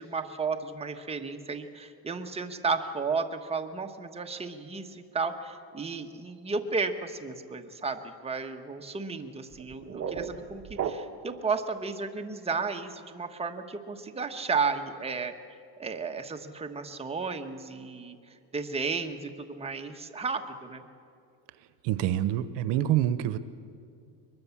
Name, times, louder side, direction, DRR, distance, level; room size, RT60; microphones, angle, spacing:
voice 1, 0.0-15.3 15.8-18.2 18.5-20.8, right 4 dB, 15° right, 4 dB, 1.3 m, -33 dB
sound 1, 9.5-11.4, right 7 dB, 35° right, 1.2 m, -35 dB
voice 2, 21.8-23.4, right 12 dB, 75° right, 13 dB, 1.0 m, -26 dB
22.5 x 21.5 x 7.2 m, 2.4 s
cardioid pair, 130°, 42 cm